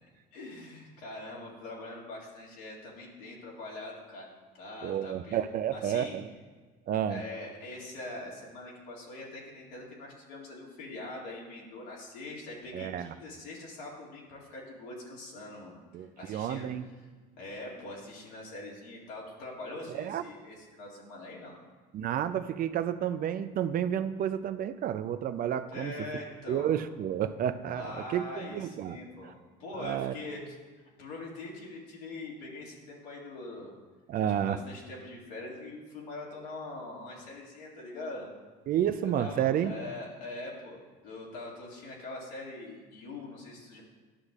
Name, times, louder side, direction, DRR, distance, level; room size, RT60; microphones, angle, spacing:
voice 1, 0.0-5.4 5.7-6.2 7.1-15.7 16.2-16.7 17.4-21.6 25.7-26.7 27.7-30.5 31.0-33.7 34.3-38.3 39.2-43.8, left 2 dB, 85° left, -4 dB, 2.2 m, -43 dB
voice 2, 4.8-6.3 6.9-7.2 12.7-13.1 15.9-16.8 19.9-20.2 21.9-25.9 26.5-29.0 29.2-29.3 29.8-30.1 34.1-34.6 38.7-39.8, right 10 dB, 45° right, 11 dB, 0.4 m, -31 dB
11.5 x 6.3 x 2.4 m, 1.4 s
supercardioid pair, 80°, 21 cm